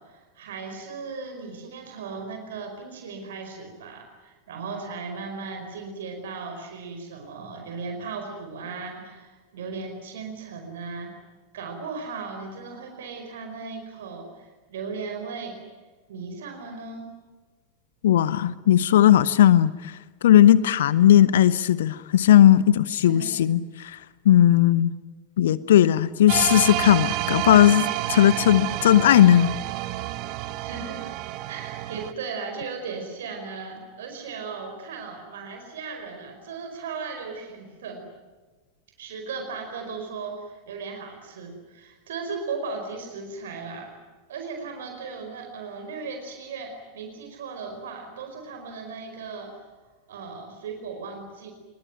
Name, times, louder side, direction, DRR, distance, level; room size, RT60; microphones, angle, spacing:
voice 1, 0.0-11.1 11.5-15.6 16.1-17.1 23.0-23.3 30.6-31.0 31.5-38.0 39.0-43.9 44.3-49.5 50.1-51.5, right 4 dB, 60° right, 4 dB, 4.8 m, -36 dB
voice 2, 18.0-19.9 20.2-24.0 24.2-24.9 25.4-29.5, left 11 dB, 60° left, 18 dB, 0.9 m, -17 dB
sound 1, 26.3-32.1, right 15 dB, 40° right, 1.2 m, -29 dB
25.0 x 22.5 x 9.2 m, 1.3 s
figure-of-eight pair, 90°, 0 cm